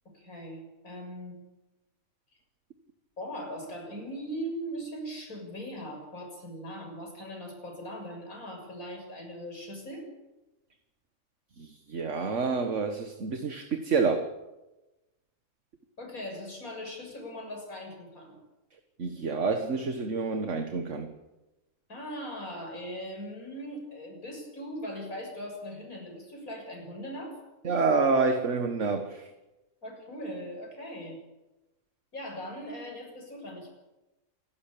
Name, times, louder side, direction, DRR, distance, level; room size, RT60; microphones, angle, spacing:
voice 1, 0.1-1.4 3.2-10.0 16.0-18.4 21.9-27.4 29.8-31.2 32.1-33.7, equal, 80° left, 2 dB, 7.3 m, -40 dB
voice 2, 11.6-14.3 19.0-21.1 27.6-29.3, right 4 dB, 60° right, 6 dB, 1.8 m, -28 dB
28.0 x 13.0 x 8.7 m, 1.0 s
omnidirectional pair, 1.5 m